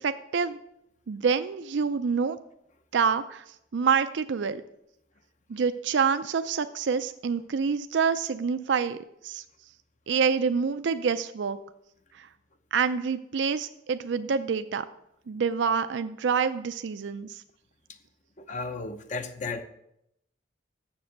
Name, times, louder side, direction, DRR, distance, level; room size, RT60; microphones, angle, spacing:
voice 1, 0.0-0.6 1.1-2.4 2.9-3.4 3.7-4.6 5.5-9.0 9.2-9.4 10.1-11.6 12.7-14.8 15.3-17.3, right 6 dB, 75° right, 11 dB, 0.4 m, -27 dB
voice 2, 18.4-19.6, left 3 dB, 40° left, 8 dB, 0.8 m, -34 dB
7.3 x 6.9 x 7.8 m, 0.80 s
head